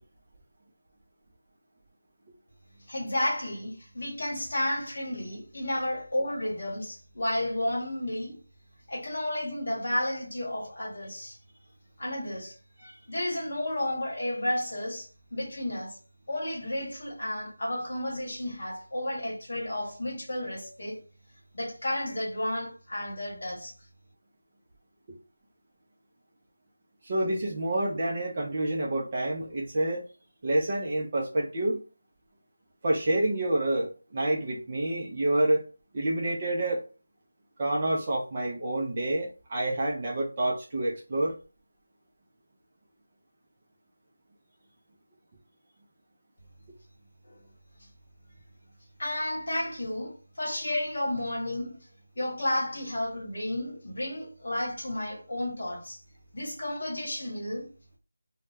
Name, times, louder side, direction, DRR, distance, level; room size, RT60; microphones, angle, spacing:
voice 1, 2.8-8.4 8.9-11.4 12.0-12.6 13.1-16.0 16.3-21.0 21.5-23.7 47.2-47.5 47.8-47.9 49.0-51.8 52.1-56.0 56.3-57.7, left 1 dB, 45° left, 1.0 m, -32 dB
voice 2, 27.0-30.0 30.4-31.8 32.8-35.6 35.9-36.8 37.6-41.4, right 1 dB, 20° right, 0.3 m, -28 dB
2.2 x 2.0 x 3.3 m
figure-of-eight pair, 180°, 0 cm